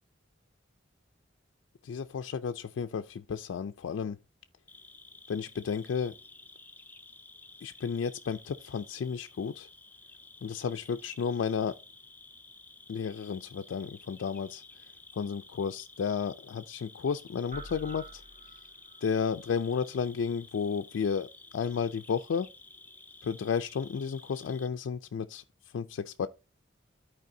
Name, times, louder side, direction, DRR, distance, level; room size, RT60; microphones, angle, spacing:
voice 1, 1.8-4.2 5.3-6.1 7.6-9.7 10.4-11.8 12.9-14.6 15.2-18.2 19.0-22.5 23.2-25.4 25.7-26.3, left 6 dB, 85° left, 0.3 m, -32 dB
Cricket, 4.7-24.7, left 3 dB, 10° left, 0.4 m, -53 dB
sound 1, 17.5-19.1, right 2 dB, 40° right, 1.3 m, -47 dB
13.5 x 4.7 x 2.6 m
head